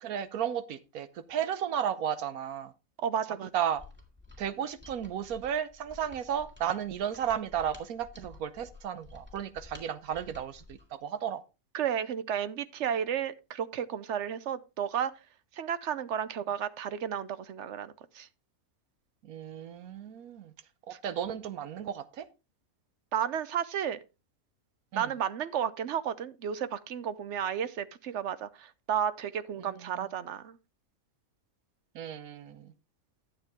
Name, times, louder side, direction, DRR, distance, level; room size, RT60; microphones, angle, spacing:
voice 1, 0.0-2.7 3.5-3.8 4.4-11.4 19.2-20.5 21.0-22.2 24.9-25.1 29.7-30.1 31.9-32.7, right 9 dB, 85° right, 1.3 m, -34 dB
voice 2, 3.0-3.5 11.7-15.1 15.6-18.3 23.1-24.0 24.9-30.6, right 8 dB, 60° right, 0.9 m, -32 dB
Mechanisms, 3.7-10.9, left 3 dB, 5° right, 2.2 m, -52 dB
11.5 x 7.5 x 3.5 m
omnidirectional pair, 1.5 m